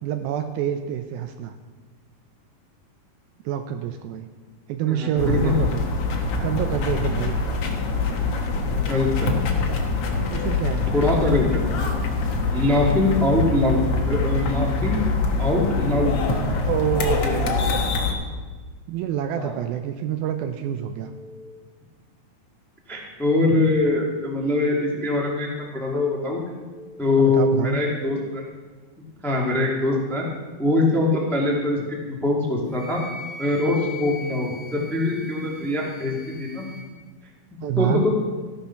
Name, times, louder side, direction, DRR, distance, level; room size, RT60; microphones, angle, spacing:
voice 1, 0.0-1.6 3.5-4.3 4.7-5.9 6.4-7.4 10.3-10.9 16.6-17.9 18.9-21.1 27.2-27.8 37.6-38.0, right 9 dB, 80° right, 7 dB, 2.2 m, -27 dB
voice 2, 4.9-5.5 8.7-9.4 10.9-11.6 12.5-13.8 14.1-15.0 15.4-16.2 17.2-17.4 19.4-19.5 22.9-26.4 27.0-28.5 29.2-30.3 30.6-33.0 33.4-36.7 37.5-37.9, left 2 dB, ahead, -2 dB, 0.5 m, -23 dB
sound 1, 5.2-18.1, left 3 dB, 80° left, 1.3 m, -24 dB
Telephone, 20.9-21.5 24.4-25.4 26.6-27.5, left 2 dB, 25° left, 2.4 m, -44 dB
Wind instrument woodwind instrument, 32.7-36.9, left 3 dB, 25° right, 1.3 m, -40 dB
14.5 x 9.0 x 5.8 m, 1.4 s
omnidirectional pair, 4.7 m